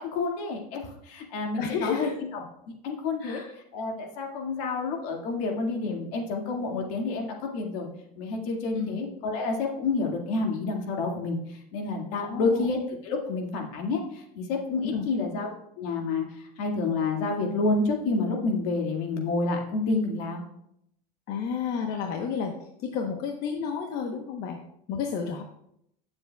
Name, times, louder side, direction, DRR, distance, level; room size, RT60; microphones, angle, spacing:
voice 1, 0.0-3.4 3.7-7.9 8.2-20.4, left 3 dB, 70° left, 1 dB, 2.0 m, -29 dB
voice 2, 1.6-2.2 3.2-3.5 8.8-9.0 12.3-12.7 14.8-15.1 21.3-24.6 24.9-25.4, left 6 dB, 50° left, 3 dB, 1.0 m, -31 dB
17.0 x 7.2 x 2.3 m, 0.75 s
cardioid pair, 150°, 20 cm